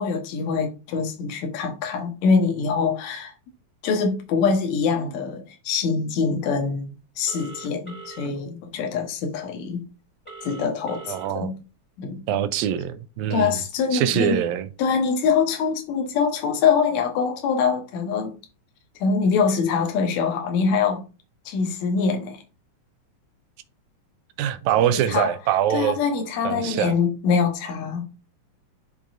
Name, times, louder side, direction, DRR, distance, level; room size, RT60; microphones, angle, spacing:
voice 1, 0.0-3.3 3.8-9.8 10.4-11.6 12.0-12.2 13.3-14.4 14.8-18.3 19.0-21.1 21.5-22.4 24.8-25.3 25.7-28.1, left 5 dB, 70° left, 2.2 m, -24 dB
Telephone, 7.3-8.3 10.2-11.3, right 4 dB, 5° left, 1.3 m, -41 dB
voice 2, 11.1-11.5 12.3-13.5 13.9-14.7 24.4-26.0 26.4-26.9, right 11 dB, 80° right, 1.8 m, -23 dB
10.5 x 3.7 x 2.5 m
omnidirectional pair, 3.6 m